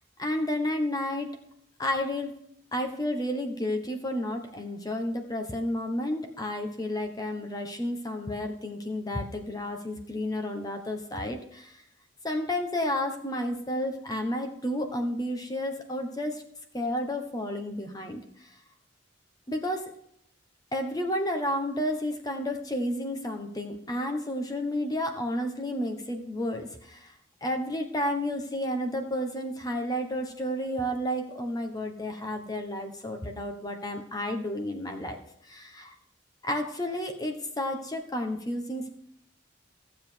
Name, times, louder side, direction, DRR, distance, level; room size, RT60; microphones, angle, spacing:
voice 1, 0.2-1.3 1.8-2.3 2.7-11.7 12.2-16.4 16.7-18.2 19.5-19.8 20.7-27.0 27.4-35.2 35.5-35.9 36.4-38.9, left 1 dB, 20° left, 5 dB, 1.2 m, -31 dB
14.5 x 7.5 x 4.6 m, 0.72 s
head